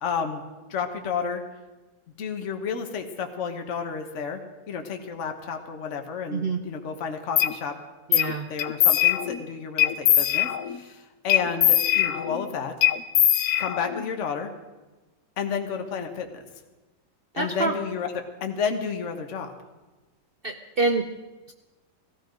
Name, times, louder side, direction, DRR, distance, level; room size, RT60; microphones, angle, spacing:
voice 1, 0.0-0.4 0.7-1.4 2.2-4.4 4.7-7.7 8.5-12.7 13.6-14.5 15.4-16.4 17.3-19.5, left 6 dB, 45° left, 5 dB, 1.4 m, -31 dB
voice 2, 6.3-6.6 8.1-8.5 17.3-17.7 20.4-21.1, right 3 dB, 60° right, 5 dB, 0.6 m, -26 dB
sound 1, 7.4-7.5 8.1-8.3 8.6-9.4 9.8-10.8 11.3-12.4 12.8-14.1, left 12 dB, 65° left, 1.1 m, -21 dB
16.0 x 15.0 x 5.2 m, 1.2 s
omnidirectional pair, 1.9 m